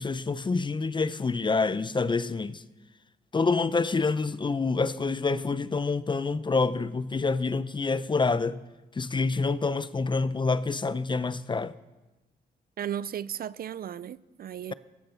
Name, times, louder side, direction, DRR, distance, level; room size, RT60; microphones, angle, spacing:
voice 1, 0.0-2.6 3.3-8.6 9.0-11.7, left 4 dB, 25° left, 0.6 m, -27 dB
voice 2, 12.8-14.7, right 9 dB, 60° right, 0.5 m, -35 dB
14.5 x 13.5 x 5.8 m
cardioid pair, 85°, 18 cm